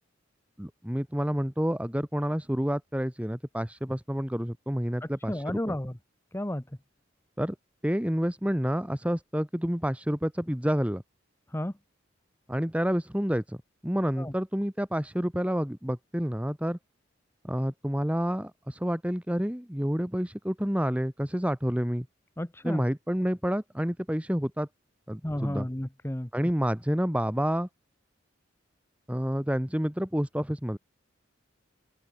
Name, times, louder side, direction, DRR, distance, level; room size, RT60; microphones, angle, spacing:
voice 1, 0.6-5.6 7.4-7.5 7.8-11.0 12.5-13.6 13.8-16.8 17.4-22.1 22.6-24.7 25.1-25.7 26.3-27.7 29.1-30.8, equal, 5° right, 1.7 m, -29 dB
voice 2, 5.0-6.0 6.3-6.7 11.5-11.7 14.2-14.3 22.4-22.8 25.2-26.3, left 1 dB, 10° left, 1.0 m, -32 dB
open air
head